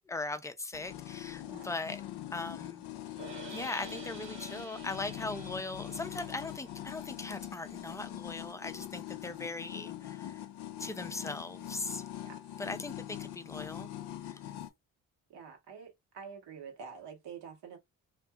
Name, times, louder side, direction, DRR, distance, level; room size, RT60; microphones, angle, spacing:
voice 1, 0.1-2.0 2.3-2.9 3.5-10.4 10.8-12.0 12.6-13.9 14.3-14.4, left 3 dB, 10° left, 0.4 m, -39 dB
sound 1, 0.7-14.7, left 12 dB, 60° left, 0.6 m, -43 dB
sound 2, 3.2-9.3, right 4 dB, 90° right, 1.0 m, -51 dB
voice 2, 15.3-17.8, right 6 dB, 65° right, 1.2 m, -47 dB
2.6 x 2.5 x 2.3 m
hypercardioid pair, 40°, 44 cm